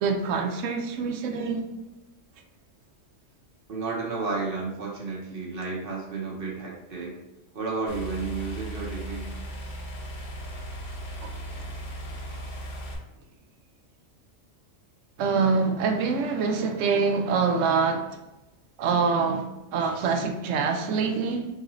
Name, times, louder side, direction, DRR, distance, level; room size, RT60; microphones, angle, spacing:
voice 1, 0.0-1.7 11.2-11.7 15.2-18.2 18.8-21.5, right 5 dB, 90° right, 1.0 m, -25 dB
voice 2, 3.7-7.2 7.5-9.3, right 4 dB, 50° right, 1.0 m, -32 dB
sound 1, 7.9-12.9, right 1 dB, 45° left, 0.9 m, -37 dB
3.8 x 3.7 x 3.0 m
omnidirectional pair, 1.3 m